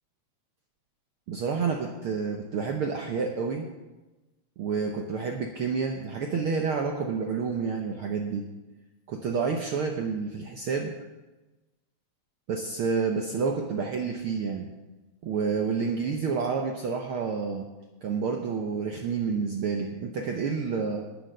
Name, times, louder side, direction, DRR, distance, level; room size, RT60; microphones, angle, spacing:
voice 1, 1.3-3.7 4.6-8.4 9.1-10.9 12.5-14.7 15.2-17.7 18.0-21.0, right 5 dB, 75° right, 3 dB, 1.2 m, -29 dB
11.5 x 9.2 x 6.5 m, 1.1 s
omnidirectional pair, 3.5 m